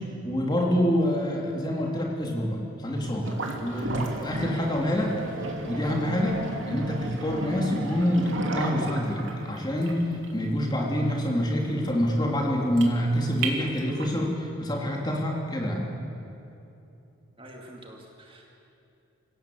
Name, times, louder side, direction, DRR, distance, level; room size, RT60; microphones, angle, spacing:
voice 1, 0.0-5.2 5.7-15.8, equal, 20° left, -1 dB, 3.0 m, -27 dB
sound 1, 3.2-14.2, right 2 dB, 65° right, 2.8 m, -34 dB
voice 2, 17.4-18.5, right 1 dB, 25° right, 0 dB, 2.3 m, -47 dB
27.0 x 17.0 x 8.0 m, 2.8 s
head